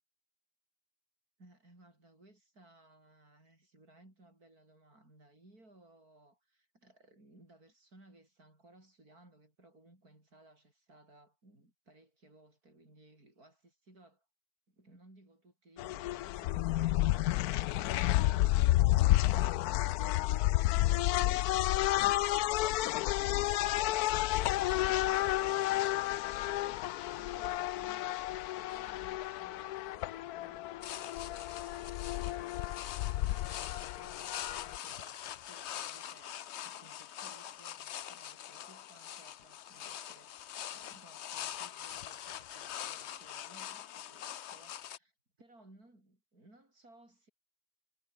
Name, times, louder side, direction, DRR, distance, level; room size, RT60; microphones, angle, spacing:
voice 1, 1.4-14.3 14.7-23.2 23.7-26.8 27.2-45.1 45.4-47.3, right 2 dB, 85° right, 8.4 m, -61 dB
sound 1, 15.8-34.8, left 15 dB, 90° left, 1.1 m, -31 dB
sound 2, 30.8-45.0, left 10 dB, 55° left, 0.9 m, -44 dB
omnidirectional pair, 1.6 m